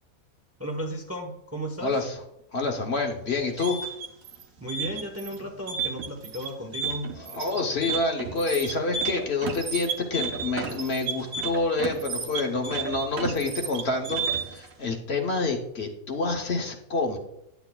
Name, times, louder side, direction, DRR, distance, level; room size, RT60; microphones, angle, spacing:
voice 1, 0.6-2.0 4.6-7.1, equal, 15° right, 2 dB, 0.7 m, -34 dB
voice 2, 1.8-2.2 2.5-3.8 7.2-17.2, left 3 dB, 50° left, 2 dB, 1.0 m, -28 dB
sound 1, 3.3-14.7, right 5 dB, 75° right, 1.4 m, -32 dB
11.0 x 8.1 x 2.3 m, 0.81 s
omnidirectional pair, 1.5 m